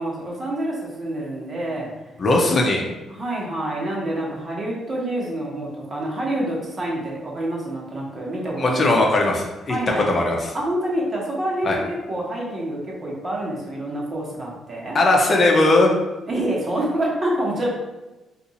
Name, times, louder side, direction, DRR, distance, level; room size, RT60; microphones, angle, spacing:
voice 1, 0.0-1.9 3.1-9.2 9.7-10.1 10.5-15.0 16.3-17.7, right 1 dB, 35° right, -4 dB, 1.2 m, -27 dB
voice 2, 2.2-2.8 8.6-9.8 10.1-10.5 11.6-11.8 14.9-15.9, left 2 dB, 45° left, 0 dB, 0.7 m, -18 dB
2.6 x 2.5 x 4.0 m, 1.1 s
cardioid pair, 90°, 0 cm